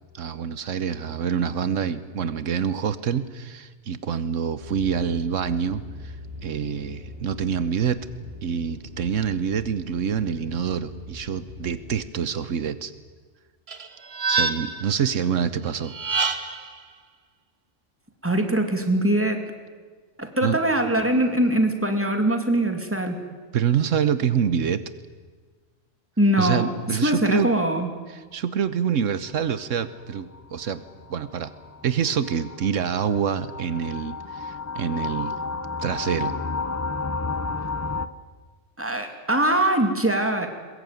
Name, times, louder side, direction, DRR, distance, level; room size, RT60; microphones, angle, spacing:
voice 1, 0.1-6.1 6.4-8.1 8.4-12.9 14.3-15.9 20.4-20.6 23.5-24.8 26.4-27.5 28.1-30.8 31.1-31.5 31.8-35.3 35.8-36.3, right 7 dB, 85° right, 14 dB, 1.3 m, -26 dB
sound 1, 4.6-12.0, left 2 dB, 65° left, 8.2 m, -41 dB
sound 2, 13.7-14.9 15.8-16.7, right 4 dB, 55° right, 1.6 m, -26 dB
voice 2, 18.2-19.5 20.2-23.2 26.2-27.9 38.8-40.5, right 1 dB, 10° right, 5 dB, 2.6 m, -22 dB
sound 3, 29.6-38.1, left 4 dB, 20° left, 0.6 m, -32 dB
22.0 x 21.5 x 9.3 m, 1.4 s
omnidirectional pair, 1.3 m